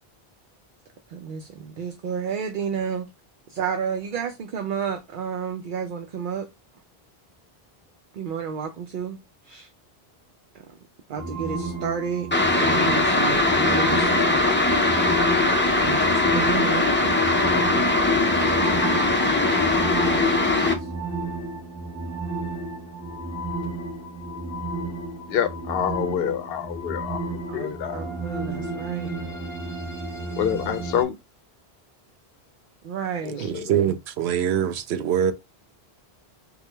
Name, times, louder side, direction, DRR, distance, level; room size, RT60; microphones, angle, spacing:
voice 1, 1.1-3.1 3.5-6.5 8.1-9.2 9.4-9.7 10.5-10.7 11.1-14.4 15.8-17.2 20.7-20.9 25.3-25.4 27.5-29.1 32.8-33.5, right 6 dB, 60° right, 0.7 m, -31 dB
sound 1, 11.2-31.0, right 2 dB, 15° right, 1.4 m, -33 dB
sound 2, 12.3-20.7, left 2 dB, 15° left, 0.4 m, -20 dB
voice 2, 25.3-27.2 27.5-28.0 30.4-31.1 33.5-33.7, left 9 dB, 70° left, 0.7 m, -26 dB
voice 3, 33.4-35.3, right 9 dB, 90° right, 0.8 m, -23 dB
4.7 x 2.3 x 3.2 m
omnidirectional pair, 1.1 m